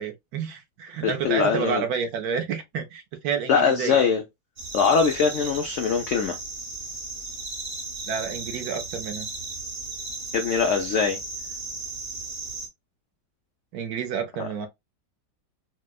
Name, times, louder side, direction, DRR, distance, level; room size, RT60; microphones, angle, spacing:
voice 1, 0.0-4.0 8.1-9.3 13.7-14.7, right 6 dB, 70° right, 1.1 m, -30 dB
voice 2, 1.0-1.8 3.5-4.2 4.7-6.4 10.3-11.2 14.4-14.5, left 6 dB, 90° left, 0.6 m, -22 dB
sound 1, 4.6-12.7, right 3 dB, 45° right, 0.7 m, -35 dB
4.3 x 2.1 x 2.2 m
omnidirectional pair, 1.9 m